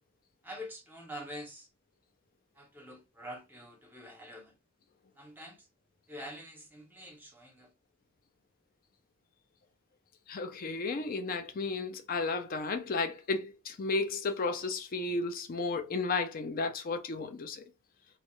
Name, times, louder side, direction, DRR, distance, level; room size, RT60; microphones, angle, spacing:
voice 1, 0.4-1.7 2.6-4.5 5.2-5.7 6.1-7.7, equal, 10° right, 0.7 m, -46 dB
voice 2, 10.3-17.7, left 3 dB, 40° left, 0.4 m, -33 dB
2.3 x 2.1 x 3.0 m
head